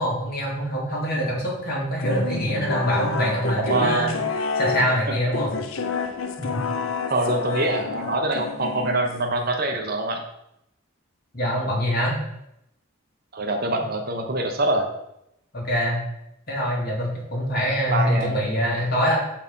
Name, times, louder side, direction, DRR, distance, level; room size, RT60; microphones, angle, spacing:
voice 1, 0.0-4.2 4.5-5.5 6.4-6.6 11.3-12.1 15.5-16.0 16.5-19.2, equal, 45° left, -3 dB, 2.3 m, -24 dB
sound 1, 2.0-9.4, left 4 dB, 75° left, 0.6 m, -29 dB
voice 2, 3.6-4.1 5.1-5.2 7.1-10.2 13.3-14.9 17.9-18.3, right 2 dB, 45° right, 3 dB, 1.0 m, -24 dB
5.9 x 4.5 x 5.5 m, 0.82 s
head